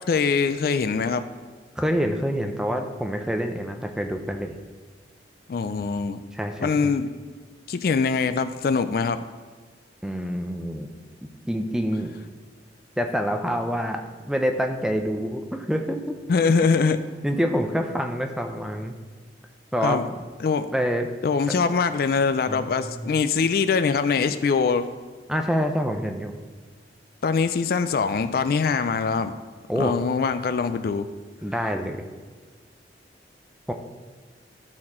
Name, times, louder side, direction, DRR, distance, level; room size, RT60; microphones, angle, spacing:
voice 1, 0.1-1.2 5.5-6.2 6.6-7.1 7.7-9.2 16.3-17.0 19.8-20.0 20.4-20.7 21.2-24.9 27.2-29.3 29.8-31.1, left 5 dB, 55° left, 11 dB, 0.3 m, -23 dB
voice 2, 1.8-4.6 6.3-6.9 10.0-10.9 11.5-12.1 13.0-16.2 17.2-19.0 19.7-20.2 20.7-21.1 22.5-23.1 25.3-26.3 29.7-29.9 31.4-32.0 33.7-33.8, equal, 5° right, 4 dB, 0.5 m, -26 dB
12.0 x 4.2 x 4.3 m, 1.5 s
head